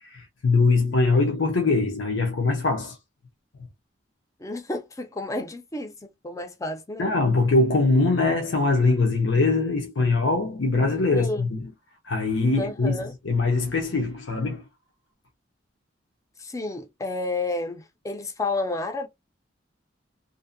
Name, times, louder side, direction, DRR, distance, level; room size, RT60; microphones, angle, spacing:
voice 1, 0.0-3.0 7.0-11.7 12.0-14.6, left 3 dB, 85° left, 0.6 m, -22 dB
voice 2, 4.4-7.1 11.1-11.5 12.5-13.1 16.4-19.1, left 2 dB, 15° left, 0.4 m, -31 dB
2.6 x 2.1 x 2.5 m
head